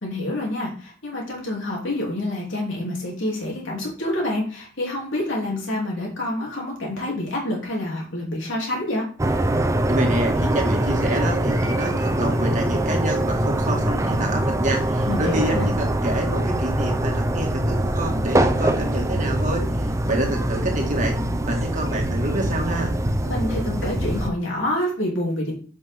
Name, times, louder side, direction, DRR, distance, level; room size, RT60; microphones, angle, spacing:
voice 1, 0.0-9.1 15.1-15.7 23.2-25.5, left 1 dB, 70° left, -2 dB, 2.7 m, -27 dB
sound 1, 9.2-24.3, right 1 dB, 15° right, 0.6 m, -23 dB
voice 2, 9.9-19.6 20.1-21.2 21.5-22.9, right 1 dB, 40° right, 1 dB, 1.8 m, -27 dB
8.1 x 5.4 x 3.5 m, 0.41 s
head